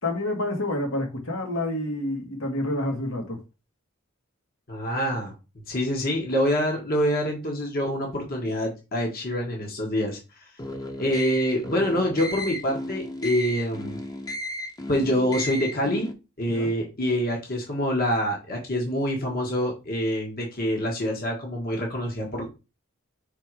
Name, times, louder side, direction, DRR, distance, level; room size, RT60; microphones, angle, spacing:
voice 1, 0.0-3.4 16.5-16.7, left 1 dB, 75° left, 2.1 m, -28 dB
voice 2, 4.7-5.3 5.7-10.2 11.0-14.0 14.9-16.1 16.4-22.5, equal, 45° left, 1.5 m, -26 dB
sound 1, 10.6-16.1, left 1 dB, 20° left, 1.0 m, -34 dB
5.8 x 3.8 x 4.7 m
head